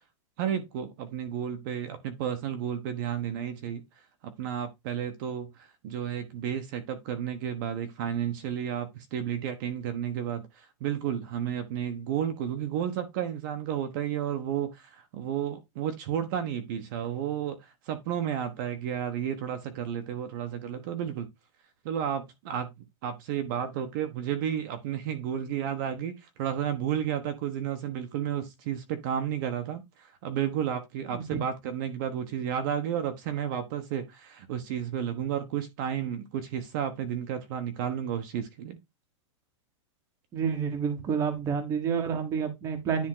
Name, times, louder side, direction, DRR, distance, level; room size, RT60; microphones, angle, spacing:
voice 1, 0.4-3.8 4.2-21.3 21.8-22.7 23.0-26.1 26.4-38.8, right 9 dB, 40° right, 1.2 m, -32 dB
voice 2, 40.3-43.1, right 6 dB, 20° right, 1.3 m, -29 dB
10.0 x 3.7 x 3.8 m
supercardioid pair, 175°, 16 cm